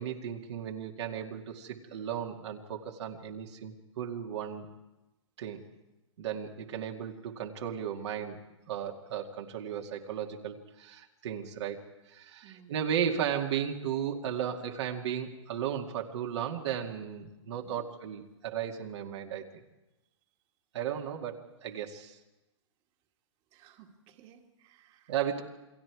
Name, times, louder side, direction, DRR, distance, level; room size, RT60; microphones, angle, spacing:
voice 1, 0.0-4.7 5.4-5.6 6.2-19.6 20.7-22.2 25.1-25.4, right 9 dB, 60° right, 1 dB, 2.2 m, -35 dB
voice 2, 12.4-12.9 17.6-17.9 23.5-25.2, right 9 dB, 35° right, 3 dB, 2.1 m, -57 dB
28.5 x 22.0 x 4.8 m, 1.0 s
hypercardioid pair, 130°, 16 cm